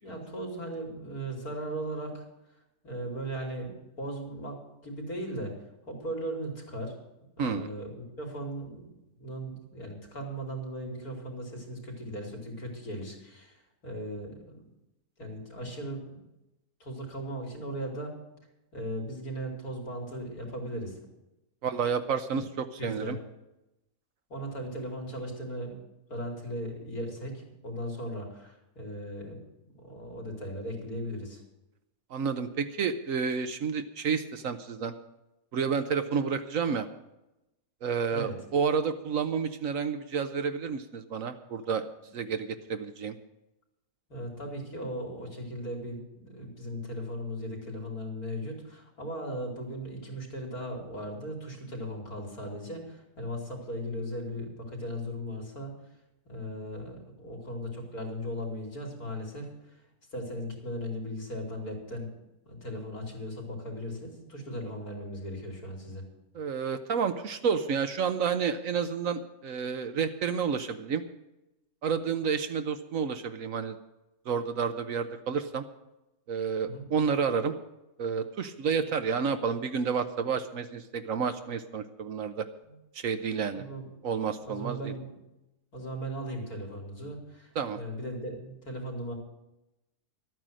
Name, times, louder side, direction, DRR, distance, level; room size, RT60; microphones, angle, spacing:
voice 1, 0.0-2.2 2.8-5.5 5.9-6.9 7.4-13.6 13.8-14.6 15.2-16.2 16.8-18.1 18.7-21.0 22.3-22.4 22.8-23.2 24.3-25.8 26.1-29.4 29.8-31.4 38.1-38.4 44.1-55.7 56.3-59.5 60.1-62.1 62.5-66.0 76.7-76.8 83.5-83.8 84.4-85.2 85.7-89.1, equal, 80° left, 0 dB, 3.7 m, -37 dB
voice 2, 21.6-23.2 32.1-34.9 35.5-36.9 37.8-41.9 42.1-43.1 66.3-71.0 71.8-73.8 74.3-75.6 76.3-77.5 78.0-82.5 82.9-83.6 84.0-84.9 87.6-87.8, right 6 dB, 65° right, 9 dB, 1.1 m, -30 dB
12.5 x 9.2 x 7.5 m, 0.92 s
omnidirectional pair, 1.6 m